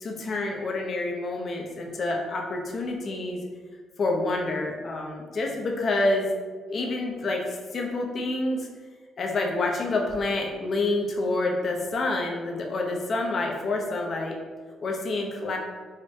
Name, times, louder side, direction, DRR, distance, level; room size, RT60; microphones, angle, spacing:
voice 1, 0.0-3.4 4.0-6.3 6.7-8.7 9.2-14.4 14.8-15.6, left 2 dB, 50° left, 1 dB, 0.6 m, -28 dB
5.0 x 2.1 x 2.7 m, 1.5 s
cardioid pair, 90°, 0 cm